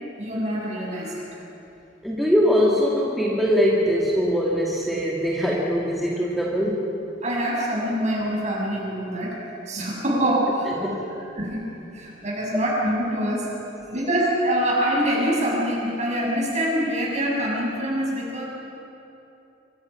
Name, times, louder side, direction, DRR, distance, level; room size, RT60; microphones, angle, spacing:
voice 1, 0.2-1.3 7.2-9.3 9.7-10.7 11.4-11.6 11.9-13.5 13.9-18.4, equal, 40° right, -3 dB, 7.1 m, -25 dB
voice 2, 2.0-6.9 10.8-11.1, equal, ahead, -5 dB, 2.3 m, -22 dB
25.5 x 25.0 x 5.9 m, 2.9 s
head